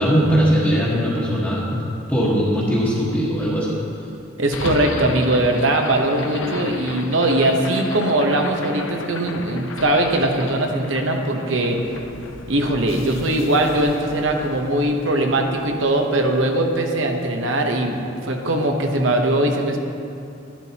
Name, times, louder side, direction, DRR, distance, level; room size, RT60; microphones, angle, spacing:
voice 1, 0.0-3.8, equal, 10° left, -9 dB, 1.4 m, -20 dB
voice 2, 4.4-11.8 12.5-19.8, right 1 dB, 70° right, 3 dB, 1.0 m, -20 dB
sound 1, 4.5-16.7, left 3 dB, 85° left, 0.7 m, -34 dB
11.5 x 11.5 x 2.9 m, 2.6 s
head